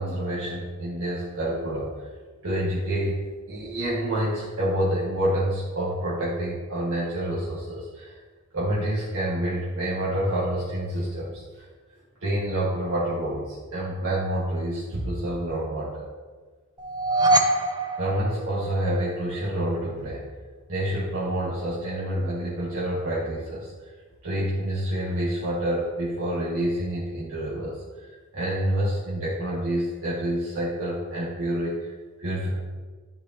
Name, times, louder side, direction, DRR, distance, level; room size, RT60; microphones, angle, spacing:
voice 1, 0.0-2.0 2.4-8.2 8.5-11.7 12.2-16.1 18.0-20.2 20.7-23.7 24.2-32.5, right 1 dB, 65° right, -8 dB, 1.8 m, -28 dB
sound 1, 16.8-19.1, right 1 dB, 20° right, 0.7 m, -24 dB
13.5 x 4.8 x 2.9 m, 1.4 s
head